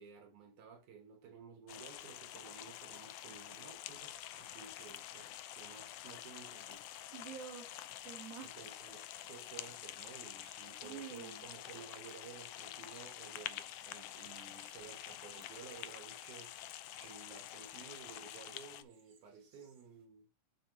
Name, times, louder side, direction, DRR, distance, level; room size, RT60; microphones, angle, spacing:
voice 1, 0.0-6.9 8.4-16.5 17.0-20.3, right 6 dB, 75° right, 2.6 m, -54 dB
sound 1, 1.7-18.8, left 13 dB, 85° left, 1.4 m, -48 dB
sound 2, 4.4-20.0, right 4 dB, 40° right, 2.1 m, -68 dB
voice 2, 7.1-8.6 10.8-11.5, right 8 dB, 60° right, 2.5 m, -49 dB
7.3 x 4.7 x 4.4 m
omnidirectional pair, 3.5 m